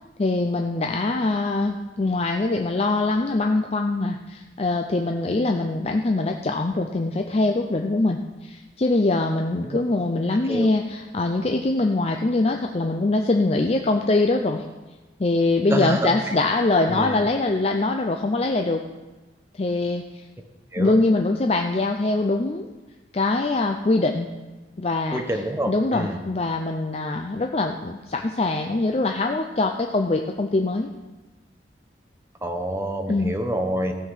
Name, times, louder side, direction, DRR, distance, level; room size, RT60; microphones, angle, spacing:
voice 1, 0.2-14.6 15.2-18.8 19.5-20.0 20.8-22.7 23.1-24.3 24.8-30.9 33.1-33.4, left 2 dB, 35° left, 3 dB, 0.5 m, -23 dB
voice 2, 15.7-16.1 16.9-17.2 20.7-20.9 25.1-26.2 32.4-33.9, right 1 dB, 15° right, 4 dB, 1.0 m, -27 dB
15.0 x 5.7 x 6.5 m, 1.2 s
head